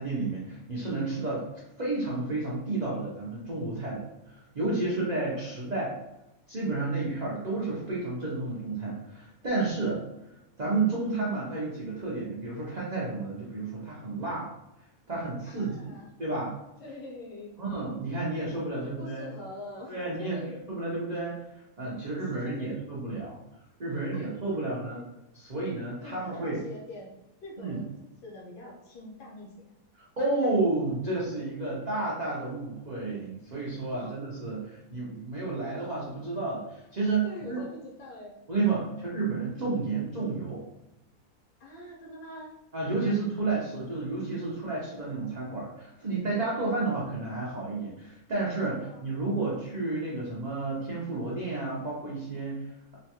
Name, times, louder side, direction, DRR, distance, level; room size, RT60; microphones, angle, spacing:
voice 1, 0.0-1.4 1.8-5.9 6.5-10.0 10.6-14.5 15.1-15.9 16.2-16.5 17.6-19.3 19.9-20.4 20.7-23.4 23.8-25.0 25.3-26.6 27.6-27.8 29.9-37.6 38.5-40.6 42.7-53.0, right 3 dB, 75° right, -6 dB, 0.4 m, -31 dB
voice 2, 4.8-5.7 15.5-16.1 16.8-17.5 18.4-20.6 22.0-22.8 24.1-25.0 26.0-27.1 27.4-29.5 33.9-34.1 37.2-38.3 41.6-42.5 43.0-43.2 44.2-44.3 46.0-46.3 48.8-49.6, left 1 dB, 80° left, -2 dB, 1.4 m, -45 dB
3.1 x 2.2 x 2.8 m, 0.91 s
omnidirectional pair, 1.7 m